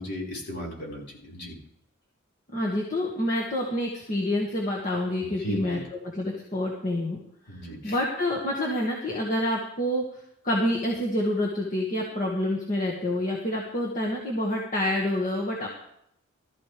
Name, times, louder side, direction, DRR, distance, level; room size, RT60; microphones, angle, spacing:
voice 1, 0.0-1.5 5.2-5.8 7.5-8.0, equal, 55° left, -3 dB, 5.3 m, -36 dB
voice 2, 2.5-5.8 6.1-7.2 7.8-10.0 10.4-15.7, left 1 dB, 40° left, -3 dB, 1.9 m, -27 dB
17.0 x 13.5 x 3.5 m, 0.74 s
head